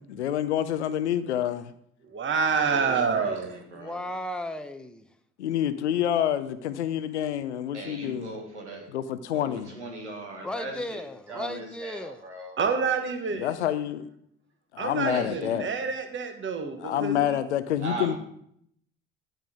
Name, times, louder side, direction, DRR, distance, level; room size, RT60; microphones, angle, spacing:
voice 1, 0.0-1.7 5.4-8.4 8.9-9.7 13.3-14.1 14.7-15.7 16.8-18.2, left 10 dB, 80° left, 13 dB, 0.6 m, -28 dB
voice 2, 2.1-3.6 10.4-10.5 12.6-13.5 14.8-17.4, right 5 dB, 35° right, 6 dB, 1.4 m, -28 dB
voice 3, 2.7-4.0 7.7-8.9 9.3-9.5 9.7-11.0 11.3-12.6 15.0-15.6 17.8-18.2, right 2 dB, 90° right, 1 dB, 1.6 m, -38 dB
voice 4, 3.7-5.0 10.4-12.2, left 1 dB, 5° left, 9 dB, 0.8 m, -35 dB
9.7 x 9.2 x 3.7 m, 0.69 s
figure-of-eight pair, 50°, 34 cm